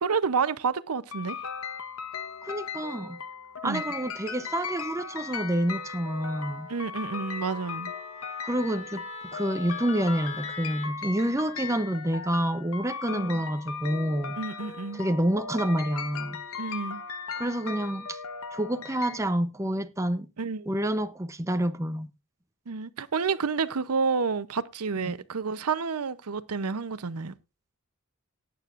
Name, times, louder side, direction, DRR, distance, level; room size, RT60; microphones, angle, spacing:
voice 1, 0.0-1.4 3.6-3.8 6.7-7.9 13.1-13.4 14.4-15.0 16.6-17.0 20.4-20.7 22.7-27.3, right 5 dB, 85° right, 0.7 m, -29 dB
sound 1, 1.1-19.2, left 5 dB, 70° left, 1.2 m, -38 dB
voice 2, 2.4-3.2 3.6-6.7 8.4-9.0 9.3-14.6 14.9-16.4 17.4-18.2 18.5-20.3 20.7-22.1 25.0-25.1, right 1 dB, 15° right, 0.7 m, -28 dB
Wind instrument woodwind instrument, 5.8-10.9, left 4 dB, 30° left, 2.2 m, -43 dB
18.5 x 9.1 x 2.5 m
head